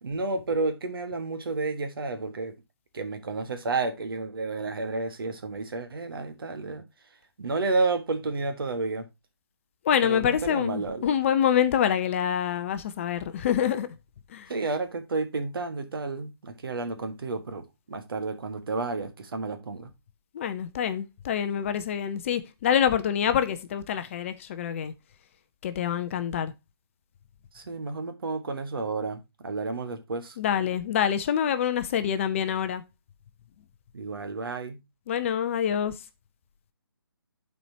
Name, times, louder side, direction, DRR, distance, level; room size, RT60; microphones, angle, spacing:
voice 1, 0.0-2.5 2.9-6.8 7.4-9.1 10.0-11.1 14.5-19.9 27.5-30.4 33.9-34.8, right 3 dB, 65° right, 1.4 m, -31 dB
voice 2, 9.8-13.9 14.3-14.5 20.3-24.9 25.6-26.5 30.4-32.8 35.1-36.0, left 9 dB, 30° left, 0.6 m, -26 dB
12.0 x 4.4 x 2.8 m
figure-of-eight pair, 145°, 13 cm